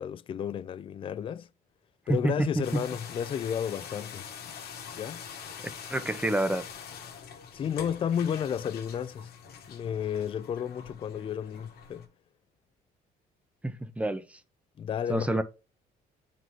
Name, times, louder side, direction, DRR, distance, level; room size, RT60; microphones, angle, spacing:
voice 1, 0.0-1.5 2.1-4.3 4.9-5.2 7.5-9.3 9.7-12.0 14.8-15.4, left 8 dB, 30° left, 0.4 m, -32 dB
sound 1, 2.6-12.1, left 7 dB, 65° left, 1.2 m, -44 dB
voice 2, 5.9-6.6 13.6-14.2 15.1-15.4, right 1 dB, 10° right, 0.7 m, -27 dB
8.9 x 4.0 x 3.1 m
cardioid pair, 110°, 17 cm